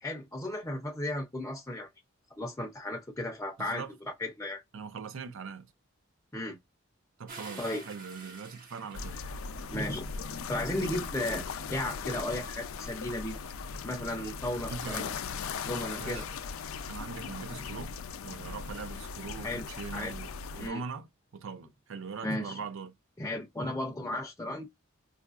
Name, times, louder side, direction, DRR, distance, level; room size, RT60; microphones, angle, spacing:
voice 1, 0.0-1.9 2.4-3.8 4.2-4.6 6.3-6.6 7.6-7.9 9.7-10.1 10.5-11.4 11.7-13.4 13.8-15.1 15.6-16.2 19.4-19.7 19.9-20.1 20.6-20.8 22.2-22.6 23.2-24.7, left 1 dB, 15° left, 0.5 m, -34 dB
voice 2, 3.6-3.9 4.7-5.7 7.2-9.2 14.6-15.2 16.0-16.3 16.9-18.0 18.2-22.9, right 5 dB, 70° right, 0.5 m, -41 dB
sound 1, 7.3-9.9 10.5-13.4, right 3 dB, 45° right, 1.2 m, -51 dB
sound 2, 8.9-20.7, left 5 dB, 85° left, 0.4 m, -39 dB
4.5 x 2.4 x 2.4 m
head